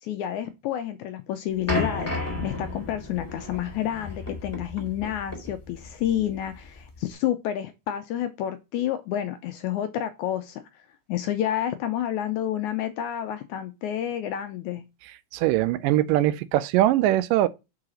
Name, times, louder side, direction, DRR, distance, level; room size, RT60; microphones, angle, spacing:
voice 1, 0.0-10.6 11.1-14.8, left 11 dB, 80° left, 1.8 m, -29 dB
sound 1, 1.7-7.1, left 1 dB, 5° left, 1.2 m, -33 dB
voice 2, 15.3-17.5, right 14 dB, 85° right, 2.1 m, -21 dB
4.9 x 4.8 x 6.2 m
omnidirectional pair, 3.8 m